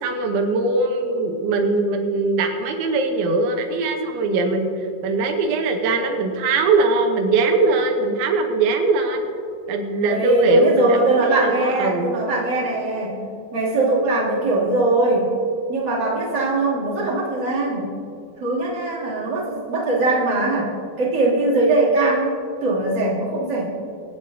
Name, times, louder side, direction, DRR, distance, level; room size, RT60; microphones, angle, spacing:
voice 1, 0.0-4.7 5.0-9.3 9.7-12.1, right 3 dB, 85° right, 4 dB, 3.4 m, -21 dB
voice 2, 10.1-13.2 13.5-15.3 15.7-17.9 18.4-22.3 22.6-23.7, right 2 dB, 30° right, -8 dB, 2.6 m, -21 dB
24.5 x 8.8 x 2.7 m, 2.4 s
omnidirectional pair, 5.2 m